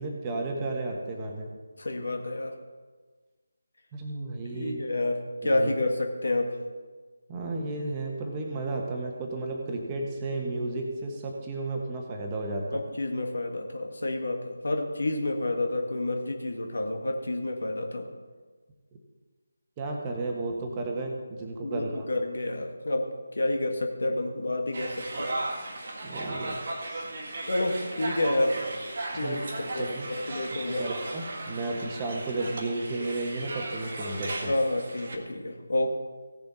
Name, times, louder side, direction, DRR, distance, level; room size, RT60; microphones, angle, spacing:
voice 1, 0.0-1.5 3.9-4.8 5.4-5.7 7.3-12.8 19.8-22.0 26.0-26.6 26.8-27.0 29.1-30.0 30.7-34.5, right 2 dB, 20° right, 0 dB, 1.3 m, -33 dB
voice 2, 1.8-2.5 4.5-6.6 12.7-18.1 21.6-23.1 23.3-25.3 27.5-28.6 29.2-29.4 29.7-30.8 34.5-36.0, left 2 dB, 60° left, 3 dB, 1.7 m, -29 dB
sound 1, 24.7-35.2, right 2 dB, 40° right, 1.6 m, -36 dB
16.5 x 7.0 x 4.1 m, 1.4 s
figure-of-eight pair, 155°, 0 cm